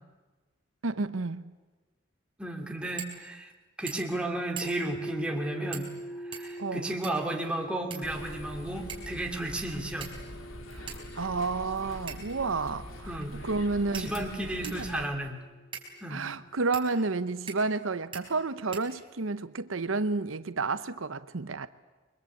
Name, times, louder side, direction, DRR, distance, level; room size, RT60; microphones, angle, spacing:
voice 1, 0.8-1.5 6.6-6.9 10.7-13.2 13.4-14.1 14.6-15.0 16.1-21.7, right 3 dB, 80° right, 0.9 m, -31 dB
voice 2, 2.4-3.5 3.8-5.9 6.2-10.1 13.1-13.4 13.9-15.4 16.0-16.2, right 1 dB, 5° right, 2.6 m, -33 dB
sound 1, 3.0-3.2 3.5-3.6 3.9-4.2 4.6-4.9 5.7-6.0 6.3-7.3 7.9-8.5 8.9-9.2 10.0-10.4 10.9-11.0 12.1-12.4 13.2-13.3 13.9-14.9 15.7-15.9 16.7-16.9 17.5-17.8 18.1-18.2 18.7-19.3, right 7 dB, 25° right, 4.9 m, -42 dB
sound 2, 4.6-16.5, right 1 dB, 20° left, 1.4 m, -45 dB
sound 3, 8.0-15.1, left 1 dB, 85° left, 2.8 m, -44 dB
28.5 x 23.5 x 8.4 m
head